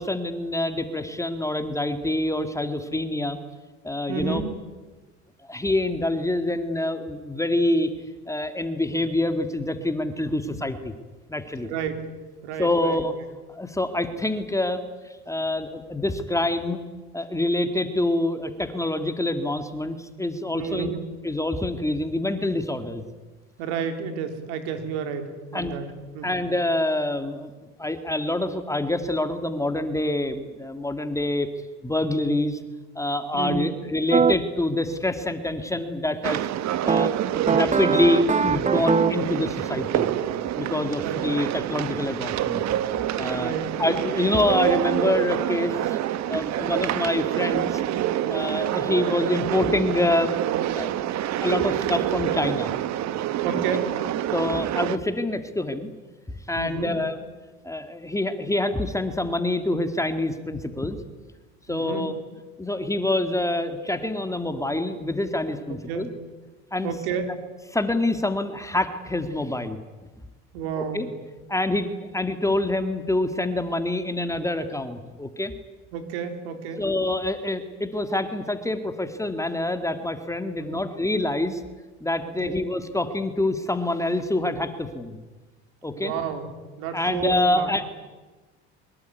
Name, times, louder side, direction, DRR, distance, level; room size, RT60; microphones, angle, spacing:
voice 1, 0.0-3.4 3.8-4.5 5.4-7.9 8.3-10.9 11.3-11.7 12.6-13.1 13.5-16.8 17.1-20.9 21.2-23.0 25.5-25.7 26.2-27.5 27.8-31.5 31.8-32.6 33.0-36.5 36.8-40.1 40.6-42.6 43.2-43.5 43.8-46.0 46.3-47.8 48.3-50.3 50.8-52.7 54.3-55.9 56.5-57.2 57.6-61.0 61.7-62.2 62.6-66.1 66.7-66.9 67.7-69.8 70.8-71.1 71.5-71.9 72.1-75.5 76.8-81.6 82.0-85.2 85.8-86.1 86.9-87.9, left 1 dB, 10° left, 8 dB, 2.2 m, -26 dB
voice 2, 4.1-4.5 11.6-12.0 12.4-13.0 20.5-21.1 23.6-25.8 26.1-26.4 33.3-33.8 40.9-41.3 43.3-43.9 53.4-53.9 56.5-57.0 61.7-62.1 65.7-66.1 66.8-67.3 70.5-71.1 75.9-76.8 80.6-80.9 82.2-82.7 85.9-86.5 86.8-87.9, right 6 dB, 80° right, 7 dB, 3.9 m, -31 dB
sound 1, 34.1-34.4 36.9-39.3, right 6 dB, 20° right, 1.1 m, -22 dB
sound 2, 36.2-55.0, right 12 dB, 55° right, 1.4 m, -27 dB
23.5 x 21.0 x 9.4 m, 1.2 s
supercardioid pair, 90°, 33 cm